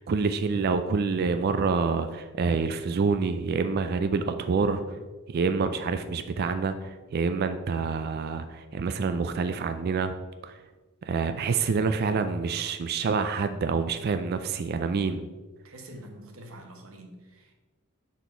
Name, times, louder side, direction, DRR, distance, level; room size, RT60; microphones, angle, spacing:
voice 1, 0.0-4.8 5.3-10.1 10.4-10.6 11.0-15.3, right 4 dB, 50° right, 9 dB, 0.3 m, -27 dB
voice 2, 15.6-17.5, right 1 dB, 70° right, 3 dB, 1.1 m, -46 dB
7.2 x 4.2 x 4.4 m, 1.3 s
head